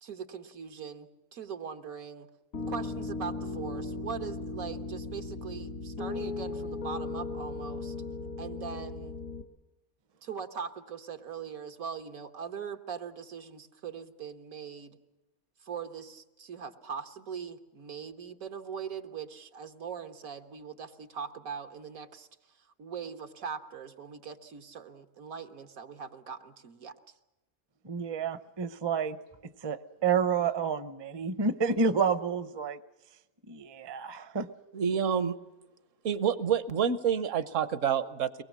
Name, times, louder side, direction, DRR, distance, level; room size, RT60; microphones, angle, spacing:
voice 1, 0.0-2.3 2.7-7.9 8.4-9.1 10.2-15.0 15.6-22.3 22.8-26.9, right 7 dB, 85° right, 6 dB, 1.7 m, -41 dB
Piano, 2.5-9.4, left 3 dB, 90° left, 2.4 m, -37 dB
voice 2, 27.8-29.2 29.6-32.8 33.5-34.5, right 5 dB, 30° right, 13 dB, 0.5 m, -29 dB
voice 3, 34.7-35.4 36.0-38.4, right 7 dB, 65° right, 14 dB, 1.3 m, -28 dB
23.5 x 20.0 x 7.4 m, 1.0 s
omnidirectional pair, 1.5 m